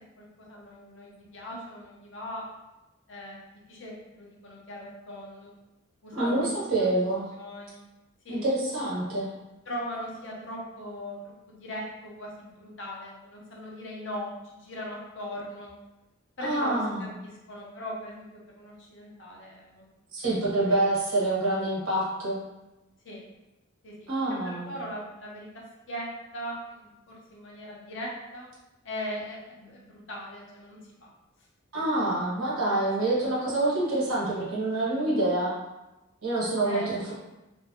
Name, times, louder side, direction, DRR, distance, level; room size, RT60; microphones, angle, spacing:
voice 1, 0.2-2.5 3.1-3.4 3.7-5.5 6.0-6.5 6.8-6.9 7.4-7.8 8.2-8.4 9.7-11.2 11.5-15.7 16.4-19.8 20.5-20.6 23.0-23.2 23.8-25.5 25.9-26.1 26.3-28.5 28.8-31.1 32.6-33.1 36.6-37.1, equal, 60° left, -3 dB, 0.7 m, -39 dB
voice 2, 6.1-7.3 8.3-9.3 16.4-17.1 20.1-22.4 24.1-24.7 31.7-35.6 36.2-37.1, right 2 dB, 75° right, -7 dB, 1.1 m, -26 dB
3.2 x 2.1 x 2.7 m, 1.0 s
head